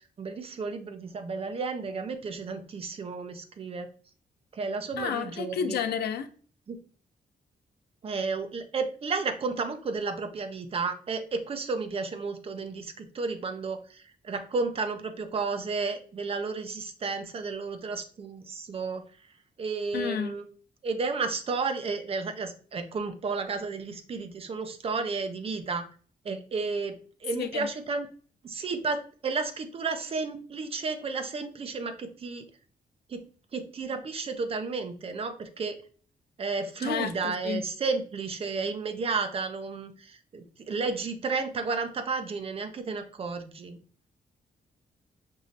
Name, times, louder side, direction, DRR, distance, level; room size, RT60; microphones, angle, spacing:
voice 1, 0.2-3.9 4.5-5.8 6.7-6.8 8.0-13.8 14.2-19.0 19.6-20.4 20.8-25.9 26.2-27.0 27.2-28.1 28.4-32.5 33.1-33.2 33.5-35.7 36.4-43.8, right 4 dB, 35° right, 0.6 m, -32 dB
voice 2, 5.0-6.3 19.9-20.3 27.4-27.7 36.8-37.6, left 7 dB, 90° left, 0.5 m, -31 dB
5.4 x 3.1 x 2.6 m
wide cardioid pair, 175°, 16 cm